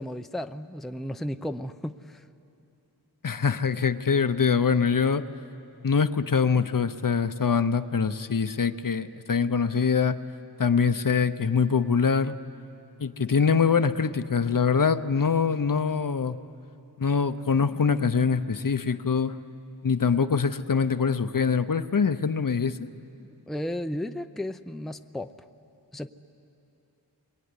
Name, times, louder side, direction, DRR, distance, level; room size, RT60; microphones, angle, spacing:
voice 1, 0.0-2.2 23.5-25.3 25.9-26.1, left 1 dB, ahead, 8 dB, 0.6 m, -34 dB
voice 2, 3.2-5.2 5.8-10.2 10.6-12.4 13.0-16.4 17.0-19.4 19.8-22.9, left 6 dB, 55° left, 11 dB, 0.8 m, -24 dB
27.5 x 22.5 x 9.7 m, 2.8 s
wide cardioid pair, 75°, 40 cm